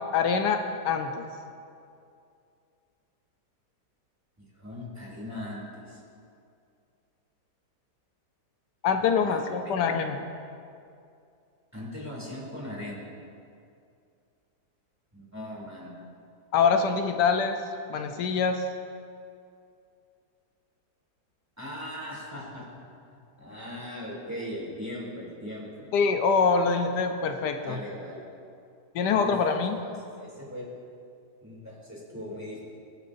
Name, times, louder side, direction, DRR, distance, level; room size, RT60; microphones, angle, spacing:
voice 1, 0.1-0.6 0.8-1.2 8.8-10.2 16.5-17.6 17.9-18.6 25.9-27.8 28.9-29.8, left 5 dB, 85° left, 6 dB, 1.3 m, -24 dB
voice 2, 4.4-6.0 9.0-10.1 11.7-13.1 15.1-15.9 21.6-22.7 23.4-25.9 27.4-28.2 29.1-29.3 29.7-29.9 30.2-30.7 31.4-32.6, left 1 dB, 10° right, -6 dB, 2.8 m, -39 dB
22.5 x 7.8 x 2.6 m, 2.4 s
omnidirectional pair, 1.8 m